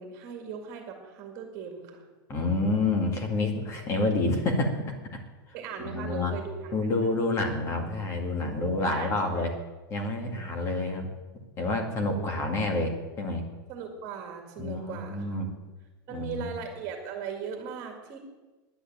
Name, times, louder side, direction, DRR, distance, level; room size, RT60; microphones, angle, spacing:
voice 1, 0.0-2.0 5.5-6.7 8.6-9.5 12.1-12.2 13.7-15.5 16.1-18.2, right 6 dB, 30° right, 3 dB, 2.2 m, -39 dB
voice 2, 2.3-5.2 5.8-6.3 6.7-9.6 9.9-11.1 11.6-13.4 14.6-15.5 16.1-16.5, left 2 dB, 25° left, 4 dB, 2.0 m, -28 dB
10.5 x 9.9 x 8.9 m, 1.2 s
supercardioid pair, 165°, 12 cm